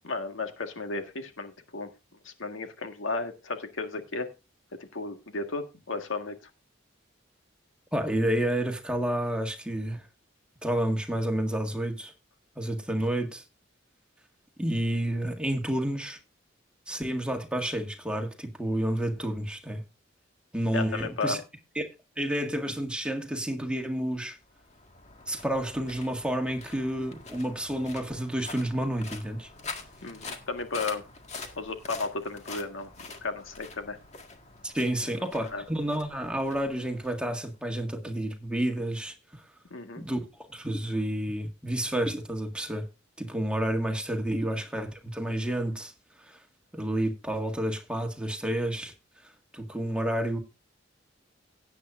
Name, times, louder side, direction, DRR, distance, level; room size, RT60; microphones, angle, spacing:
voice 1, 0.0-1.9 2.2-4.3 4.8-6.5 20.7-21.4 30.0-31.0 31.6-34.0 35.5-35.6 39.7-40.0, left 3 dB, 80° left, 1.7 m, -34 dB
voice 2, 7.9-10.0 10.6-12.1 12.6-13.4 14.6-16.2 16.9-19.8 20.5-21.4 21.7-21.8 22.2-24.4 25.3-29.5 34.6-39.4 40.0-40.2 40.5-42.9 43.2-45.9 46.2-46.4 46.7-48.9 49.5-50.4, right 1 dB, 5° right, 1.8 m, -30 dB
sound 1, 24.4-37.8, left 3 dB, 35° left, 1.8 m, -45 dB
17.0 x 8.4 x 2.5 m
head